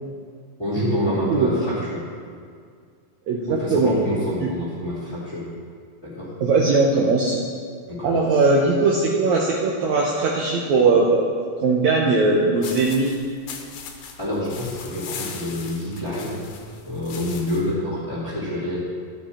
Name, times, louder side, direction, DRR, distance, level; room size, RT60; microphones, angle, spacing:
voice 1, 0.6-2.0 3.5-5.5 6.0-6.3 7.9-8.3 14.2-16.4 16.8-18.8, left 1 dB, 20° left, -9 dB, 2.0 m, -27 dB
voice 2, 1.2-1.6 3.3-3.9 4.4-4.5 6.4-7.3 8.0-11.3 11.6-13.1, right 3 dB, 90° right, -2 dB, 1.6 m, -19 dB
sound 1, 12.6-17.7, left 7 dB, 85° left, 2.9 m, -39 dB
12.5 x 8.1 x 4.3 m, 2.1 s
omnidirectional pair, 4.4 m